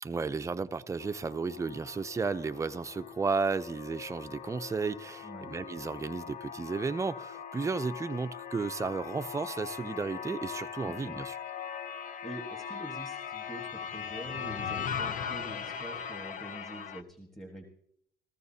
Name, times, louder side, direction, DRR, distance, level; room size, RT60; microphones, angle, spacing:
voice 1, 0.0-11.4, right 4 dB, 15° right, 0.5 m, -33 dB
sound 1, 1.0-17.0, left 7 dB, 50° left, 0.7 m, -40 dB
voice 2, 10.8-11.1 12.2-17.7, right 1 dB, ahead, 1.5 m, -45 dB
15.0 x 15.0 x 2.8 m
cardioid pair, 110°, 17 cm